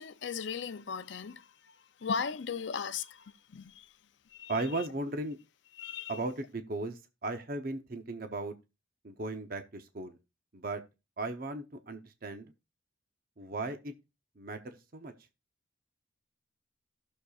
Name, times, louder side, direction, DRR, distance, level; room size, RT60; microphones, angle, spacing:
voice 1, 0.0-1.4 2.0-3.2 3.5-3.8 4.3-4.5 5.8-6.2, left 6 dB, 65° left, 0.5 m, -36 dB
voice 2, 4.5-5.4 6.1-8.5 9.0-10.2 10.5-10.8 11.2-12.5 13.4-13.9 14.4-15.1, right 2 dB, 45° right, 0.8 m, -36 dB
17.0 x 6.5 x 2.4 m
head